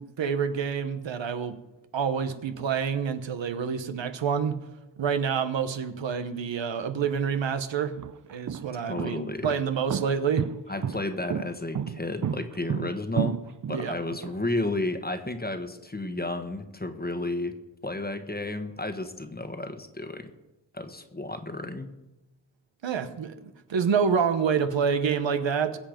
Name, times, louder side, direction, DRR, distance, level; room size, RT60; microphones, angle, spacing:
voice 1, 0.0-1.6 1.9-4.5 5.0-7.9 8.3-10.4 13.7-13.9 22.8-23.3 23.7-25.8, right 6 dB, 80° right, 10 dB, 1.1 m, -27 dB
sound 1, 7.0-7.1 7.8-14.3, right 8 dB, 45° right, 0.5 m, -31 dB
voice 2, 8.9-9.5 10.7-13.4 13.7-20.3 20.7-21.9, left 2 dB, 20° left, 8 dB, 1.4 m, -32 dB
22.0 x 7.6 x 5.2 m, 1.0 s
wide cardioid pair, 80°, 44 cm